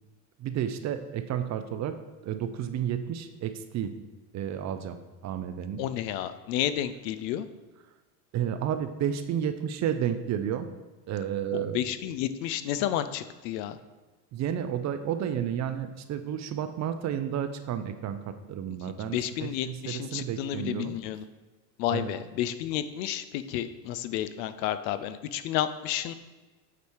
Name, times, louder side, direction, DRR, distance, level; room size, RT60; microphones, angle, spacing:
voice 1, 0.4-2.0 2.2-4.0 4.3-5.8 8.3-10.7 11.1-11.8 14.3-20.9 21.9-22.1, right 9 dB, 35° right, 9 dB, 0.4 m, -31 dB
voice 2, 5.8-7.5 11.5-13.8 19.0-21.2 21.8-26.1, left 11 dB, 80° left, 12 dB, 0.6 m, -31 dB
8.4 x 3.3 x 4.6 m, 1.2 s
supercardioid pair, 100°, 50 cm